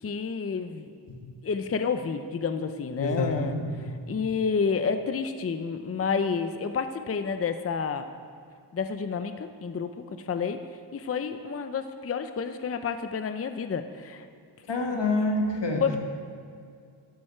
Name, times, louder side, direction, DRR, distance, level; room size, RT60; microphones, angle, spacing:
voice 1, 0.0-0.9 1.4-3.5 3.8-8.1 8.7-10.6 10.9-14.3 15.8-16.0, left 5 dB, 35° left, 9 dB, 0.5 m, -30 dB
voice 2, 3.0-3.7 14.7-15.8, left 2 dB, 70° left, 1 dB, 1.8 m, -27 dB
13.0 x 9.6 x 4.4 m, 2.3 s
wide cardioid pair, 130°, 44 cm